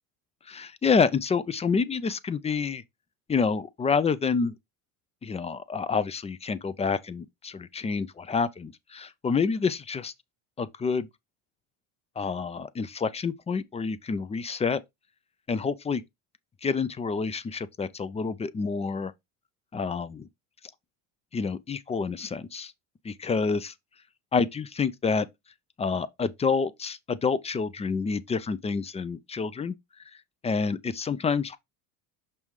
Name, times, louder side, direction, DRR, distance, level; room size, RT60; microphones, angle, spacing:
voice 1, 0.5-2.8 3.3-4.5 5.2-10.1 10.6-11.1 12.2-14.8 15.5-16.0 16.6-19.1 19.7-20.3 21.3-22.7 23.0-23.7 24.3-25.3 25.8-29.8 30.4-31.6, left 5 dB, 15° left, 0.4 m, -28 dB
6.3 x 5.4 x 3.1 m
supercardioid pair, 110°, 39 cm